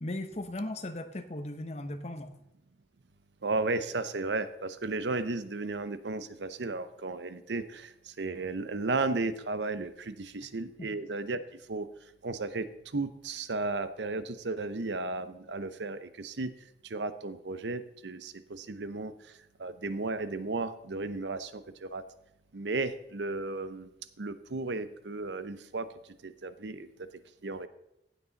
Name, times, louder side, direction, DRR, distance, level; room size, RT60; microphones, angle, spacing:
voice 1, 0.0-2.3 10.8-10.9, left 1 dB, 40° left, 8 dB, 0.9 m, -37 dB
voice 2, 3.4-11.4 11.7-11.9 12.2-12.7 12.9-16.5 16.8-19.1 19.6-22.0 22.5-23.9 24.2-25.9 26.2-26.9 27.4-27.7, right 3 dB, 85° right, 13 dB, 0.8 m, -34 dB
15.5 x 8.4 x 4.0 m, 0.85 s
head